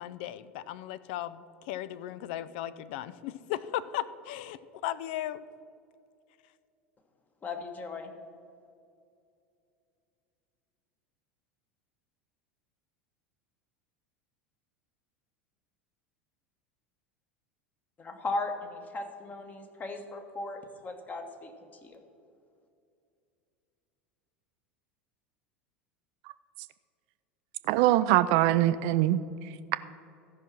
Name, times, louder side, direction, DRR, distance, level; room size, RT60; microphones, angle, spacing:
voice 1, 0.0-5.4, left 12 dB, 55° left, 15 dB, 0.4 m, -36 dB
voice 2, 7.4-8.1 18.0-21.5 21.8-22.0, left 2 dB, 25° left, 5 dB, 1.3 m, -37 dB
voice 3, 27.7-29.8, right 14 dB, 55° right, 14 dB, 0.4 m, -24 dB
14.0 x 5.7 x 6.0 m, 2.5 s
figure-of-eight pair, 80°, 6 cm